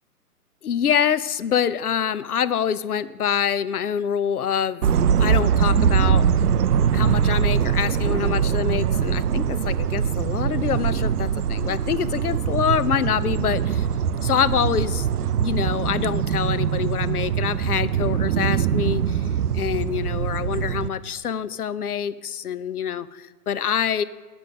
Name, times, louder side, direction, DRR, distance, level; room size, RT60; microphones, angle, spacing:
voice 1, 0.6-4.9 5.2-6.3 6.9-13.9 14.2-15.1 15.4-19.3 19.5-24.0, left 8 dB, 70° left, 16 dB, 0.7 m, -25 dB
sound 1, 4.8-20.9, right 8 dB, 75° right, 0.5 m, -22 dB
8.9 x 7.0 x 6.2 m, 1.5 s
figure-of-eight pair, 135°, 46 cm